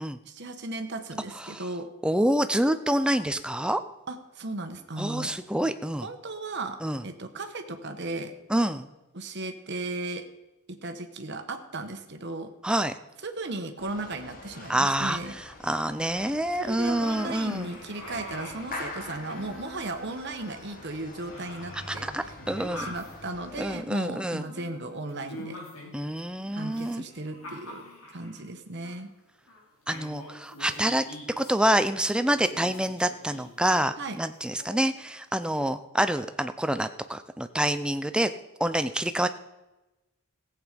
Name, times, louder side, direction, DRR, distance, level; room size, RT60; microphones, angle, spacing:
voice 1, 0.2-1.9 4.1-5.3 6.0-6.8 7.0-8.3 9.1-10.2 10.7-12.5 13.2-15.3 16.6-22.3 22.8-25.6 26.5-27.8 28.1-29.1 34.0-34.2, right 2 dB, 50° right, 6 dB, 1.2 m, -36 dB
voice 2, 2.0-3.8 5.0-6.1 6.8-7.0 8.5-8.9 12.6-12.9 14.7-17.7 21.9-22.9 23.6-24.5 25.9-27.0 29.9-31.0 31.4-38.3 38.6-39.3, right 1 dB, 5° right, 10 dB, 0.5 m, -27 dB
sound 1, 13.8-23.8, left 2 dB, 40° left, 1.6 m, -44 dB
sound 2, 16.1-16.3 16.7-18.7 19.0-20.9 21.2-23.1 24.1-26.0 26.5-28.4 28.8-29.0 29.5-29.6 29.9-31.5 32.3-33.7 34.6-34.9, left 1 dB, 70° left, 3.9 m, -44 dB
16.0 x 8.1 x 5.1 m, 1.0 s
head